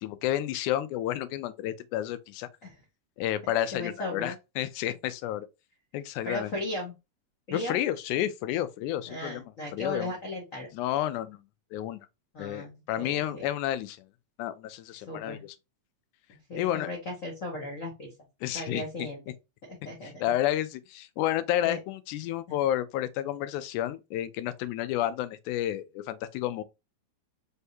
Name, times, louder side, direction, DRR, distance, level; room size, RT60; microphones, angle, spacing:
voice 1, 0.0-2.5 3.2-5.5 5.9-6.5 7.5-9.4 9.7-10.1 10.7-11.4 11.7-12.0 12.4-14.0 14.4-15.6 16.5-16.9 18.4-19.1 20.2-26.6, left 12 dB, 85° left, 2.1 m, -30 dB
voice 2, 3.7-4.4 6.2-6.9 7.5-7.8 9.1-10.7 12.3-13.5 14.9-15.4 16.3-18.1 18.5-19.2 19.6-20.1 21.6-21.8, left 1 dB, 65° left, 0.7 m, -36 dB
4.6 x 3.4 x 2.7 m
omnidirectional pair, 3.4 m